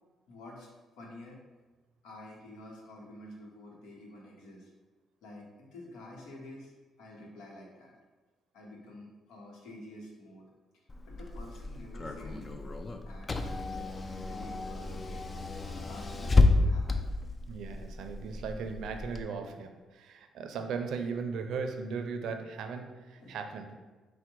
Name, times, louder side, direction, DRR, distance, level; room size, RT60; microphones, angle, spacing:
voice 1, 0.3-1.4 2.0-4.7 5.2-6.7 7.0-7.9 8.5-10.5 11.0-12.8 13.0-15.3 15.6-17.1 23.2-23.4, left 1 dB, 90° left, -1 dB, 0.9 m, -49 dB
Car / Engine, 10.9-19.2, left 3 dB, 30° left, 0.4 m, -30 dB
voice 2, 17.5-23.7, right 5 dB, 75° right, 6 dB, 0.4 m, -37 dB
4.5 x 2.2 x 4.4 m, 1.3 s
cardioid pair, 90°, 0 cm